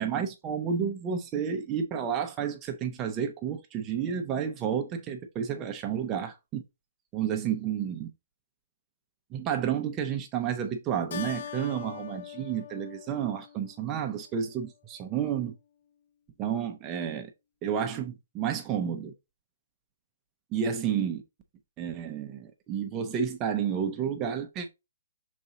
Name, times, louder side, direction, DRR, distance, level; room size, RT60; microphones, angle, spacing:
voice 1, 0.0-6.6 7.1-8.1 9.3-15.5 16.4-17.3 17.6-19.1 20.5-21.2 21.8-24.7, right 8 dB, 15° right, 0.5 m, -31 dB
Keyboard (musical), 11.1-14.0, left 9 dB, 45° left, 0.5 m, -41 dB
6.5 x 4.2 x 3.7 m
hypercardioid pair, 175°, 0 cm